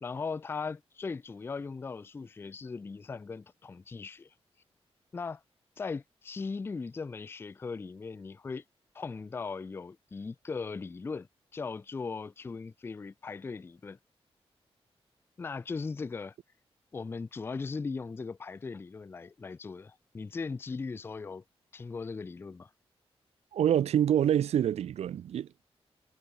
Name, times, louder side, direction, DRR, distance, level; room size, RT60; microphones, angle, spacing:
voice 1, 0.0-4.3 5.1-5.4 5.8-8.6 8.9-11.3 11.5-14.0 15.4-16.3 16.9-21.4 21.7-22.7, left 4 dB, 20° left, 0.3 m, -38 dB
voice 2, 23.5-25.7, right 10 dB, 85° right, 0.5 m, -26 dB
wide cardioid pair, 150°, 11 cm